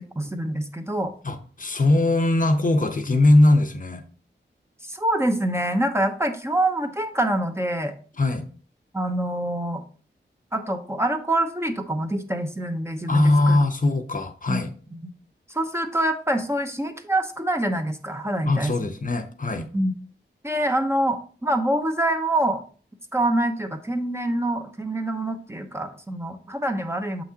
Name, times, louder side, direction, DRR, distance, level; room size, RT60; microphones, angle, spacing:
voice 1, 0.2-1.1 4.9-7.9 8.9-9.8 10.5-13.6 14.5-14.6 14.9-15.1 15.5-18.9 19.7-19.9 20.4-22.6 23.1-27.2, right 1 dB, 15° right, 5 dB, 0.7 m, -25 dB
voice 2, 1.2-4.0 8.2-8.5 13.1-14.7 18.5-19.7, left 2 dB, 45° left, 6 dB, 0.8 m, -20 dB
7.4 x 5.9 x 2.8 m, 0.41 s
wide cardioid pair, 105°, 20 cm